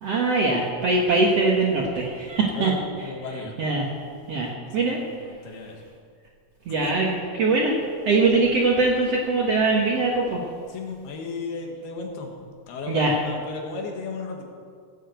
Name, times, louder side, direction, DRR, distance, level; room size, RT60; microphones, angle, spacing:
voice 1, 0.0-2.7 3.0-5.0 5.6-5.7 6.6-10.4 12.9-13.3, right 3 dB, 65° right, -1 dB, 1.6 m, -22 dB
voice 2, 3.0-3.5 4.5-5.8 6.8-6.9 10.7-12.3 12.7-14.4, left 4 dB, 90° left, 1 dB, 3.6 m, -35 dB
16.5 x 7.4 x 8.0 m, 2.1 s
omnidirectional pair, 4.4 m